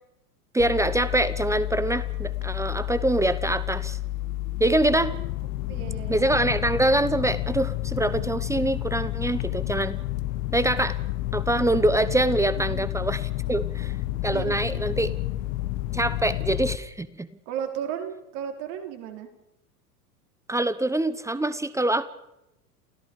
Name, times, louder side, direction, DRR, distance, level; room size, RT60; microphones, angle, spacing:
voice 1, 0.5-4.0 4.6-5.1 6.1-10.0 10.5-11.0 11.3-14.0 14.2-15.1 15.9-17.3 20.5-22.0, right 1 dB, 5° right, 16 dB, 0.9 m, -24 dB
sound 1, 0.6-16.8, left 16 dB, 55° left, 1.5 m, -30 dB
voice 2, 5.7-6.2 12.5-12.9 14.1-15.1 17.5-19.3, right 9 dB, 55° right, 5 dB, 4.1 m, -35 dB
28.5 x 17.0 x 5.4 m, 0.85 s
hypercardioid pair, 90°, 46 cm